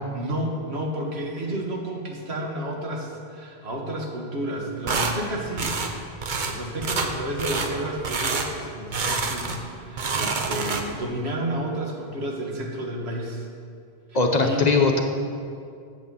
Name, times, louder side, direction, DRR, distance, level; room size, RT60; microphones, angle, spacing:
voice 1, 0.1-5.8 6.4-13.5 14.1-14.7, right 1 dB, 85° right, 0 dB, 1.7 m, -31 dB
sound 1, 4.9-5.2 5.6-5.9 6.2-6.5 6.8-7.1 7.4-7.7 8.0-8.5 8.9-9.6 9.9-11.0, right 4 dB, 50° right, 0.9 m, -27 dB
voice 2, 14.1-15.0, left 3 dB, 45° left, 3 dB, 0.9 m, -20 dB
8.4 x 7.2 x 7.0 m, 2.3 s
omnidirectional pair, 1.1 m